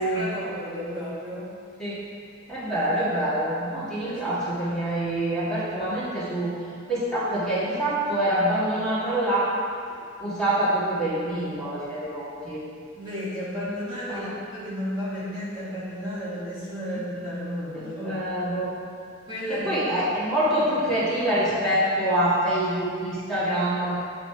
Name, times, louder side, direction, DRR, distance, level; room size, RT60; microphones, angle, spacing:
voice 1, 0.0-1.5 4.0-4.8 13.0-18.2 19.3-19.8, equal, 25° right, -11 dB, 1.8 m, -33 dB
voice 2, 2.5-6.5 6.9-9.5 10.2-12.6 14.1-14.3 16.9-17.0 17.8-18.8 19.5-24.0, right 1 dB, 5° left, -11 dB, 2.0 m, -25 dB
9.7 x 4.0 x 4.8 m, 2.3 s
head